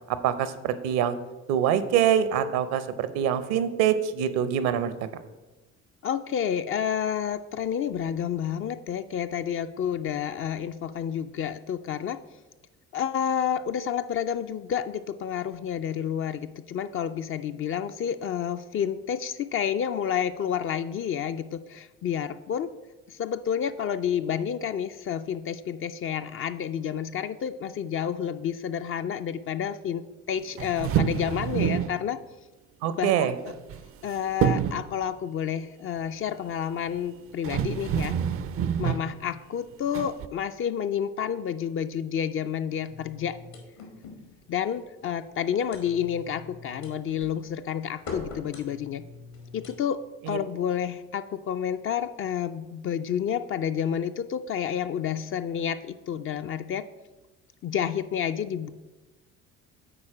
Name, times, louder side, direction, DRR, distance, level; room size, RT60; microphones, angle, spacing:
voice 1, 0.1-1.2 1.5-5.1 32.8-33.3 50.2-50.4, right 9 dB, 65° right, 13 dB, 0.7 m, -25 dB
voice 2, 6.0-12.2 12.9-22.7 23.1-32.2 33.0-33.5 34.0-38.2 38.8-43.4 44.5-49.0 49.5-56.9 57.6-58.7, left 8 dB, 35° left, 10 dB, 0.4 m, -30 dB
sound 1, 30.6-32.0 33.5-34.1 34.4-34.9 36.9-37.0 37.4-39.1 39.9-40.3, right 9 dB, 35° right, 0.4 m, -27 dB
sound 2, 42.8-49.8, left 3 dB, 75° left, 1.9 m, -44 dB
8.7 x 4.3 x 4.8 m, 1.1 s
hypercardioid pair, 55°, 40 cm